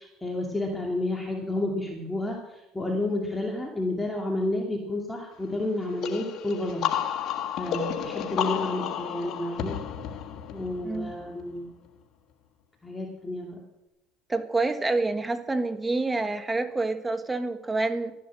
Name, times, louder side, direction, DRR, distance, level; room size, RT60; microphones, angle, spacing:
voice 1, 0.0-6.8 7.6-9.8 10.5-11.7 12.8-13.6, left 2 dB, 10° left, 0 dB, 2.6 m, -30 dB
sound 1, 6.0-11.6, left 9 dB, 55° left, 1.6 m, -32 dB
voice 2, 10.8-11.1 14.3-18.1, right 3 dB, 15° right, 9 dB, 1.6 m, -27 dB
13.0 x 10.5 x 7.5 m, 0.93 s
supercardioid pair, 90°, 0 cm